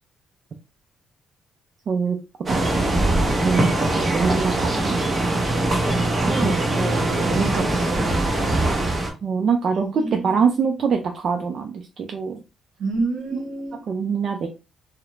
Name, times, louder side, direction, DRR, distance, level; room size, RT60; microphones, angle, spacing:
voice 1, 1.9-2.2 2.5-5.4 9.2-12.4 13.9-14.5, right 5 dB, 55° right, 0.4 m, -24 dB
sound 1, 2.5-9.1, right 2 dB, 35° right, 0.8 m, -22 dB
voice 2, 6.2-8.7 9.8-10.3 12.8-13.8, right 3 dB, 80° right, 0.8 m, -28 dB
2.4 x 2.0 x 3.0 m
cardioid pair, 90°, 0 cm